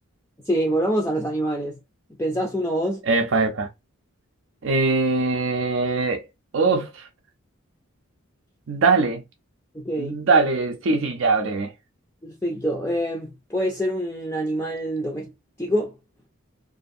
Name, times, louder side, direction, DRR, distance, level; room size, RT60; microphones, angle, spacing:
voice 1, 0.4-1.8 2.2-3.0 9.7-10.2 12.2-15.3 15.6-16.0, equal, 10° left, 0.4 m, -25 dB
voice 2, 3.0-3.7 4.6-6.2 6.5-7.1 8.7-9.2 10.0-11.7, right 3 dB, 65° right, 0.5 m, -21 dB
2.5 x 2.5 x 2.5 m
head